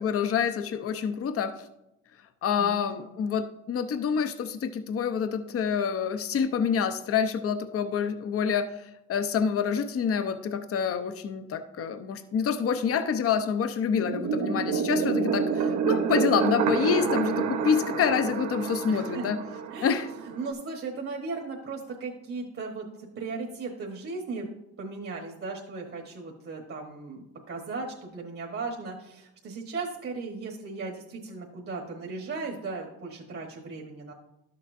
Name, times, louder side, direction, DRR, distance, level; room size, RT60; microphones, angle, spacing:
voice 1, 0.0-1.7 2.4-19.4 19.8-20.1, left 7 dB, 50° left, 9 dB, 0.7 m, -27 dB
voice 2, 2.6-3.2 18.9-19.3 19.7-19.9 20.4-24.5 24.8-34.1, right 4 dB, 45° right, 0 dB, 1.1 m, -37 dB
sound 1, 14.0-20.5, right 6 dB, 75° right, 0.7 m, -28 dB
11.5 x 6.8 x 2.6 m, 0.89 s
cardioid pair, 90°, 30 cm